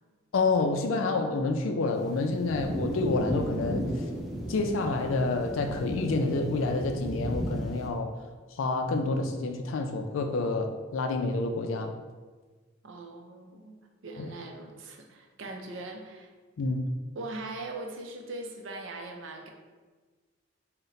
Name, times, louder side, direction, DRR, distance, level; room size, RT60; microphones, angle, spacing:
voice 1, 0.3-3.9 4.5-8.1 8.6-11.9 14.2-14.3 16.6-16.8, left 3 dB, 80° left, 0.4 m, -28 dB
sound 1, 2.0-7.9, equal, ahead, 0.6 m, -34 dB
voice 2, 12.8-13.8 14.0-16.3 17.2-19.5, right 2 dB, 70° right, 0.5 m, -40 dB
3.9 x 2.1 x 3.9 m
head